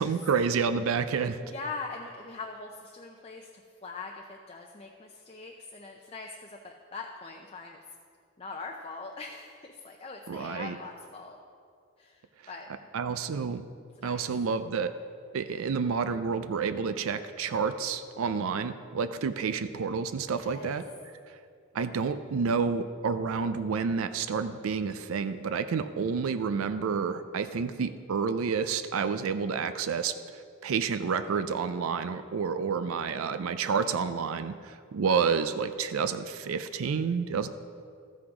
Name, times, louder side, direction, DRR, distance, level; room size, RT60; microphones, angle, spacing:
voice 1, 0.0-1.4 10.3-10.8 12.9-13.6 14.0-14.9 15.3-20.9 21.7-30.1 30.6-37.5, right 5 dB, 80° right, 11 dB, 0.4 m, -29 dB
voice 2, 1.4-7.8 8.4-11.4 12.0-12.7 14.0-14.3 20.3-20.8, left 4 dB, 25° left, 1 dB, 0.5 m, -42 dB
13.5 x 6.2 x 4.8 m, 2.3 s
head